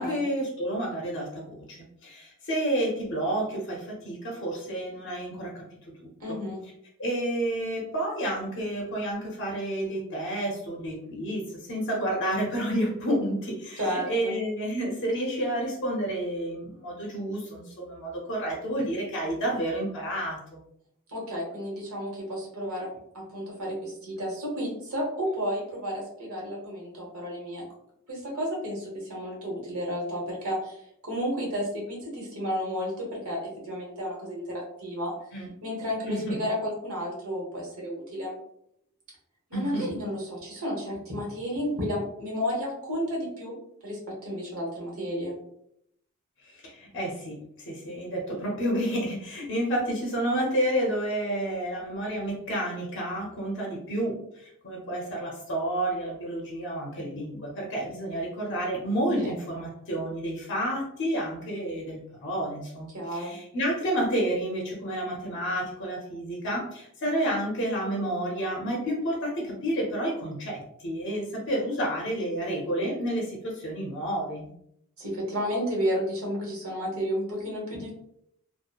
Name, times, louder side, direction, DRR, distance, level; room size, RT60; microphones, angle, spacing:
voice 1, 0.0-5.6 6.3-6.4 7.0-20.6 35.3-35.5 36.1-36.4 39.5-39.8 46.4-47.4 47.7-74.5, right 1 dB, 55° left, -2 dB, 0.6 m, -30 dB
voice 2, 6.2-6.6 13.8-14.4 21.1-22.9 23.1-27.6 28.1-35.1 35.6-38.4 39.5-43.5 43.8-45.4 59.2-59.3 62.9-63.4 75.0-77.9, equal, 70° right, -3 dB, 1.0 m, -32 dB
2.9 x 2.0 x 2.3 m, 0.74 s
head